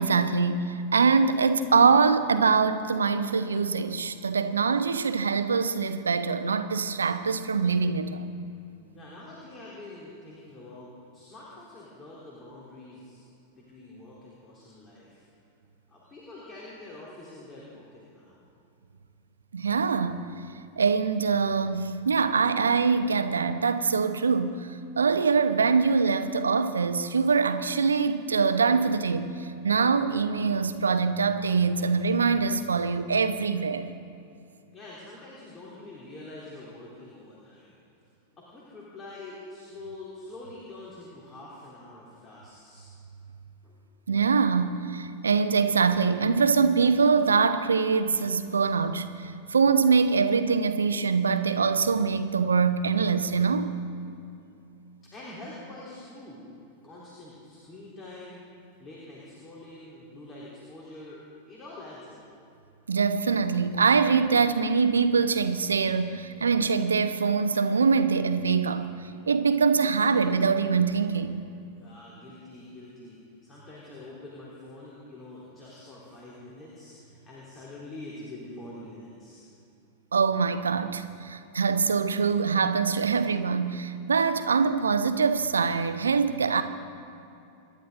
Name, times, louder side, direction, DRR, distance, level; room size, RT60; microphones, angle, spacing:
voice 1, 0.0-8.4 19.5-20.2 20.8-33.9 44.1-53.7 62.9-68.9 69.3-71.4 80.1-86.6, right 5 dB, 70° right, 10 dB, 0.9 m, -24 dB
voice 2, 8.9-13.2 13.5-15.2 15.9-18.4 34.7-37.7 38.4-42.9 43.6-43.8 55.1-56.5 56.8-58.4 58.8-61.2 61.5-62.2 71.7-79.5, left 2 dB, 25° left, -6 dB, 3.8 m, -45 dB
27.5 x 12.0 x 4.0 m, 2.7 s
figure-of-eight pair, 90°, 0 cm